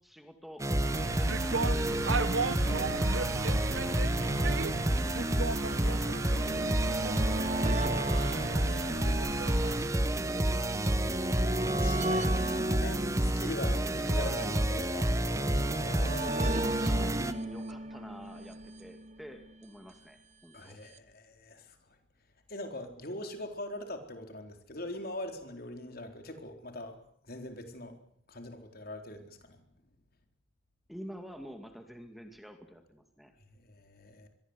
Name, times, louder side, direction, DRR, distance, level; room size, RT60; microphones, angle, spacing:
voice 1, 0.0-2.2 3.4-6.0 7.1-9.1 12.2-12.6 14.0-14.7 15.8-20.8 30.9-33.3, equal, ahead, 5 dB, 2.3 m, -47 dB
sound 1, 0.6-17.3, right 1 dB, 15° right, 1.2 m, -29 dB
sound 2, 0.8-9.9, right 3 dB, 85° right, 1.6 m, -36 dB
voice 2, 2.6-2.9 10.5-12.4 12.7-15.1 15.5-16.7 20.5-21.8 22.5-27.0 27.2-28.0 28.3-29.6 33.5-34.3, left 1 dB, 50° left, 5 dB, 4.2 m, -42 dB
sound 3, 4.5-19.7 20.7-20.8 21.0-21.1, right 1 dB, 35° right, 1.4 m, -38 dB
26.5 x 22.5 x 8.2 m, 0.68 s
head